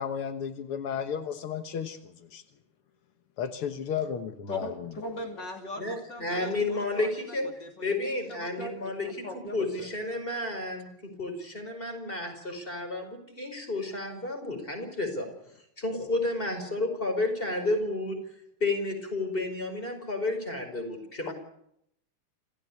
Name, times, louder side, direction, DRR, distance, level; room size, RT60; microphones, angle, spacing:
voice 1, 0.0-2.0 2.3-2.4 3.4-4.7 21.3-21.4, left 7 dB, 85° left, 7 dB, 2.2 m, -33 dB
voice 2, 4.5-8.9 9.2-9.9, left 1 dB, 55° left, 2 dB, 3.4 m, -40 dB
voice 3, 5.8-7.5 7.8-15.3 15.8-18.2 18.6-21.3, left 2 dB, 25° left, 5 dB, 5.3 m, -31 dB
27.0 x 15.5 x 8.5 m, 0.76 s
omnidirectional pair, 2.4 m